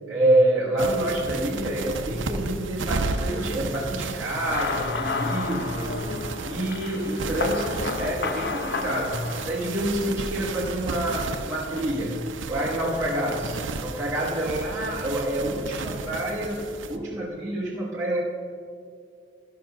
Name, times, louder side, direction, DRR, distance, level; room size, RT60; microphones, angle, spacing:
voice 1, 0.1-6.0 6.4-18.2, right 1 dB, 15° right, -8 dB, 1.1 m, -27 dB
sound 1, 0.8-17.0, right 3 dB, 80° right, 0.6 m, -34 dB
sound 2, 4.3-10.1, left 4 dB, 55° left, 0.6 m, -32 dB
13.5 x 5.7 x 5.3 m, 2.2 s
head